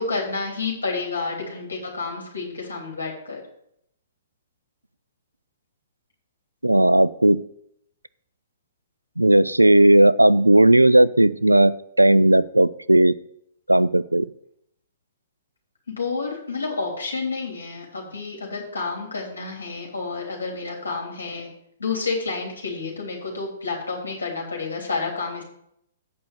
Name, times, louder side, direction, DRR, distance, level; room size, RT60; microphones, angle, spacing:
voice 1, 0.0-3.4 15.9-21.5 21.8-25.4, left 4 dB, 70° left, 0 dB, 3.2 m, -30 dB
voice 2, 6.6-7.4 9.2-13.1 13.7-14.3, right 1 dB, 85° right, 18 dB, 0.3 m, -16 dB
8.6 x 5.4 x 7.1 m, 0.74 s
figure-of-eight pair, 115°, 0 cm